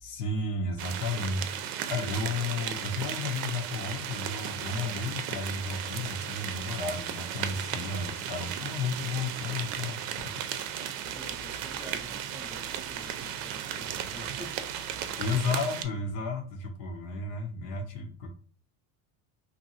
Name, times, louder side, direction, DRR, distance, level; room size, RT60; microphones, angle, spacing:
voice 1, 0.0-10.1 15.2-18.3, left 3 dB, 75° left, 1.0 m, -33 dB
sound 1, 0.8-15.8, right 9 dB, 70° right, 0.5 m, -35 dB
voice 2, 11.0-14.6, right 1 dB, ahead, 0.5 m, -46 dB
2.7 x 2.6 x 2.7 m
supercardioid pair, 110°, 46 cm